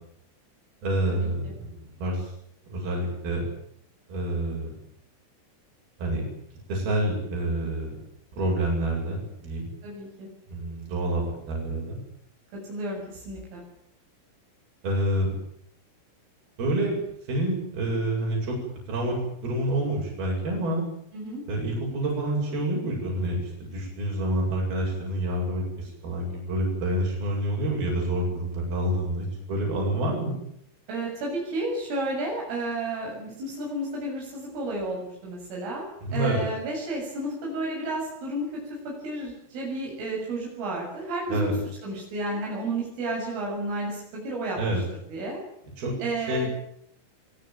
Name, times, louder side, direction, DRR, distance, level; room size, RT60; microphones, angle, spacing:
voice 1, 0.8-2.3 2.7-3.4 4.1-4.7 6.0-6.3 6.7-7.9 8.3-9.7 10.5-12.0 14.8-15.3 16.6-17.0 17.3-18.6 18.9-19.2 19.4-20.8 21.5-30.4 36.0-36.4 41.3-41.5 44.6-44.8 45.8-45.9 46.3-46.5, right 1 dB, 50° right, -1 dB, 9.8 m, -27 dB
voice 2, 9.8-10.3 12.7-13.6 21.1-21.4 30.9-41.5 41.8-44.6 44.9-45.4 46.0-46.5, right 2 dB, 80° right, -2 dB, 9.9 m, -32 dB
24.0 x 22.5 x 9.1 m, 0.71 s
omnidirectional pair, 5.7 m